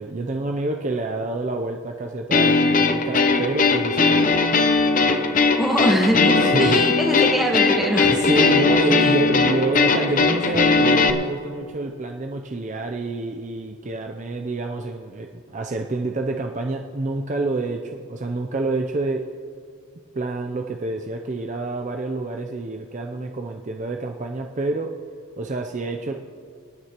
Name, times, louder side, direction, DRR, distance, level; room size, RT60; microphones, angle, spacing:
voice 1, 0.0-4.4 6.4-6.8 8.0-19.2 20.1-24.9 25.4-26.1, right 2 dB, 35° right, 3 dB, 0.5 m, -27 dB
sound 1, 2.3-11.1, left 4 dB, 35° left, 0.6 m, -19 dB
voice 2, 5.6-8.1 8.9-9.2, equal, ahead, 0 dB, 1.3 m, -23 dB
26.5 x 9.6 x 3.0 m, 2.3 s
head